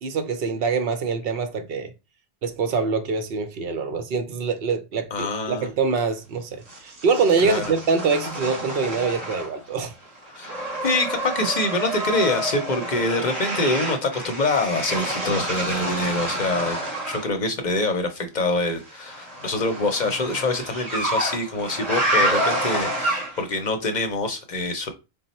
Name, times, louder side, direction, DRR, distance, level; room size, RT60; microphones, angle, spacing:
voice 1, 0.0-1.9 2.4-9.9, right 4 dB, 70° right, 0.7 m, -24 dB
voice 2, 5.1-5.7 7.4-7.6 10.3-16.8 17.1-24.9, left 2 dB, 50° left, 0.7 m, -25 dB
sound 1, 6.7-9.7 10.0-17.3 18.9-23.6, right 1 dB, 40° right, 1.2 m, -28 dB
4.0 x 2.0 x 4.0 m
omnidirectional pair, 1.1 m